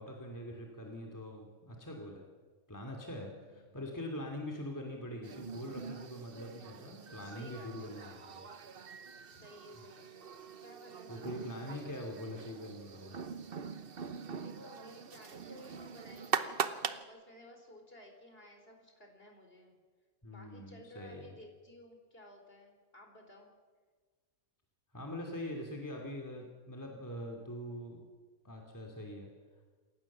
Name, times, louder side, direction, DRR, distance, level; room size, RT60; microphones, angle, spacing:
voice 1, 0.0-2.2 2.7-8.4 11.1-13.2 20.2-21.4 24.9-28.0 28.4-29.3, left 1 dB, 10° left, 1 dB, 2.8 m, -43 dB
voice 2, 3.3-3.8 7.2-8.3 8.9-11.9 14.3-16.6 17.0-19.7 20.3-23.5, left 1 dB, 40° left, 3 dB, 4.3 m, -56 dB
sound 1, 5.2-17.0, right 6 dB, 45° right, 1.0 m, -42 dB
27.5 x 15.5 x 7.4 m, 1.4 s
omnidirectional pair, 1.5 m